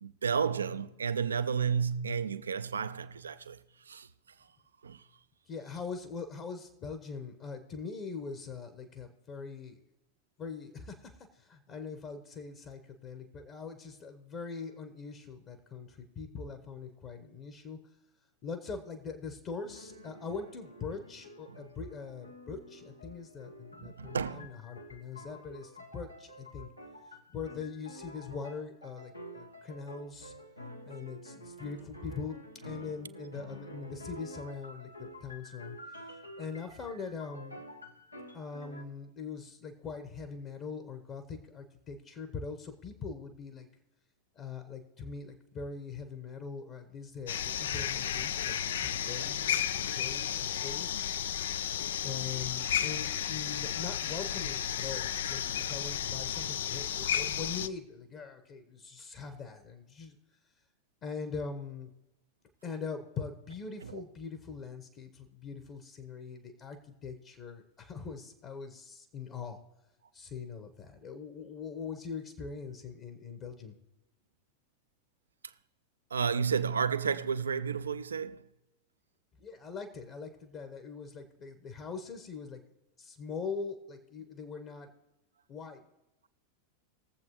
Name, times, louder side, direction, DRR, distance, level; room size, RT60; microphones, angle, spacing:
voice 1, 0.0-3.6 3.9-4.1 4.8-5.0 21.5-21.6 23.8-24.5 63.8-64.0 76.1-78.5, right 6 dB, 70° right, 0.5 m, -32 dB
voice 2, 5.5-9.8 10.4-17.8 18.4-26.7 27.3-30.3 30.8-32.4 32.6-35.8 36.1-37.6 38.3-43.7 44.3-51.0 52.0-60.1 61.0-61.9 62.6-69.6 70.1-73.8 79.4-82.6 83.0-84.9 85.5-85.8, left 5 dB, 35° left, 1.1 m, -42 dB
sound 1, 19.6-38.8, equal, 85° left, 1.1 m, -49 dB
sound 2, 47.3-57.7, left 9 dB, 60° left, 0.4 m, -33 dB
20.0 x 7.7 x 3.1 m
figure-of-eight pair, 90°, 0 cm